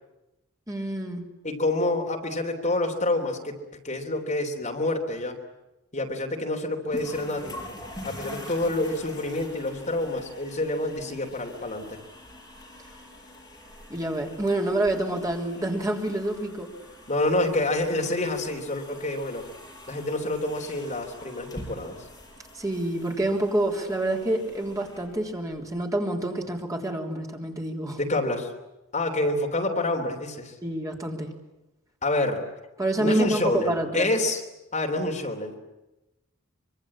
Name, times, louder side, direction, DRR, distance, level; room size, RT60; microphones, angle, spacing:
voice 1, 0.7-1.2 13.9-16.7 22.5-28.0 30.6-31.3 32.8-34.1, right 1 dB, 15° right, 1 dB, 3.4 m, -27 dB
voice 2, 1.4-3.6 3.8-5.4 5.9-7.6 8.0-12.0 17.1-19.4 19.9-22.0 28.0-28.5 28.9-30.5 32.0-32.4 33.0-34.4 34.7-35.6, left 2 dB, 35° left, 3 dB, 3.3 m, -27 dB
sound 1, 6.9-25.8, left 1 dB, 15° left, 6.4 m, -45 dB
25.0 x 24.5 x 8.7 m, 0.98 s
head